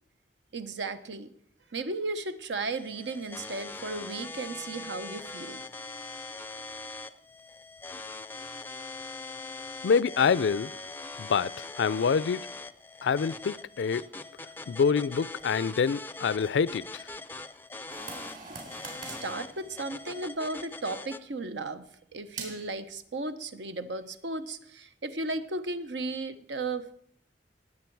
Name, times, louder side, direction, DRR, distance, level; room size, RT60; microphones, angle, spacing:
voice 1, 0.5-1.3 1.7-5.6 19.0-21.8 22.1-26.9, right 2 dB, 90° right, 0.9 m, -35 dB
sound 1, 2.6-21.2, left 3 dB, 10° left, 0.4 m, -42 dB
voice 2, 9.8-10.7 11.2-12.5 13.0-14.1 14.7-17.1, left 6 dB, 80° left, 0.4 m, -26 dB
sound 2, 17.9-20.3 22.3-22.7, right 4 dB, 50° right, 3.6 m, -43 dB
19.5 x 7.5 x 4.6 m
head